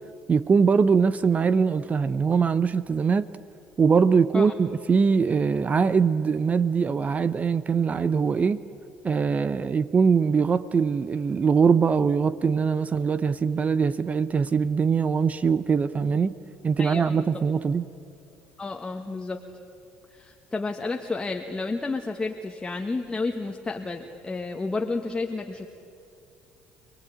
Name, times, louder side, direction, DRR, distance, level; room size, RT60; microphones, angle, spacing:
voice 1, 0.3-3.3 3.8-8.6 9.0-16.3 16.6-17.8, right 5 dB, 35° right, 0.7 m, -22 dB
voice 2, 16.8-17.4 18.6-19.4 20.1-25.7, left 3 dB, 20° left, 1.6 m, -31 dB
28.0 x 20.0 x 9.0 m
supercardioid pair, 80°, 4 cm